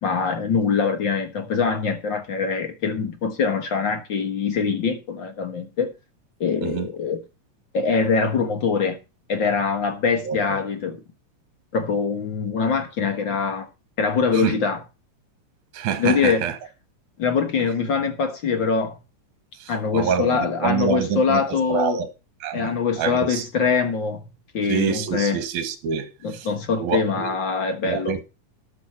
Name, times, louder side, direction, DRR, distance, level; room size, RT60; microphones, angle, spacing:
voice 1, 0.0-5.9 6.4-7.2 7.7-9.0 9.3-11.0 11.7-13.7 14.0-14.8 16.0-16.5 17.2-19.0 19.7-22.0 22.5-24.2 24.5-25.4 26.2-28.1, left 5 dB, 50° left, 1.7 m, -23 dB
voice 2, 10.2-10.6 14.3-14.6 15.7-16.6 19.6-22.1 22.4-23.4 24.7-26.5 26.8-27.4 27.9-28.2, right 7 dB, 70° right, 2.6 m, -26 dB
13.0 x 8.4 x 4.3 m
omnidirectional pair, 3.7 m